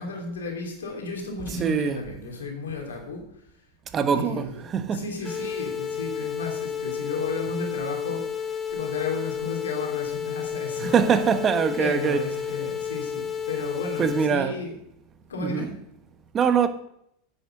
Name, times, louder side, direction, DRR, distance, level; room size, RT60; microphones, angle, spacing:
voice 1, 0.0-3.2 4.1-11.2 11.8-14.7 15.3-15.7, left 4 dB, 85° left, 3.1 m, -33 dB
voice 2, 1.6-2.0 3.9-5.0 10.8-12.2 14.0-14.6 15.4-15.7 16.3-16.7, right 7 dB, 30° right, 1.2 m, -23 dB
sound 1, 5.2-14.2, left 7 dB, 25° left, 1.1 m, -31 dB
10.0 x 7.0 x 6.6 m
hypercardioid pair, 95°, 0 cm